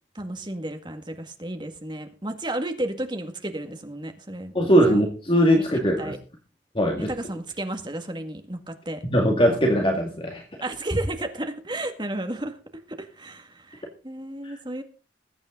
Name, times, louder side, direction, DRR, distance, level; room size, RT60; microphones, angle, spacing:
voice 1, 0.1-5.0 5.6-6.2 7.1-9.0 10.6-12.6 12.9-14.8, right 1 dB, 25° right, 6 dB, 1.9 m, -33 dB
voice 2, 4.5-6.1 6.7-7.1 9.1-10.4 14.4-14.6, equal, 30° left, 1 dB, 2.0 m, -20 dB
20.5 x 8.9 x 3.9 m, 0.35 s
head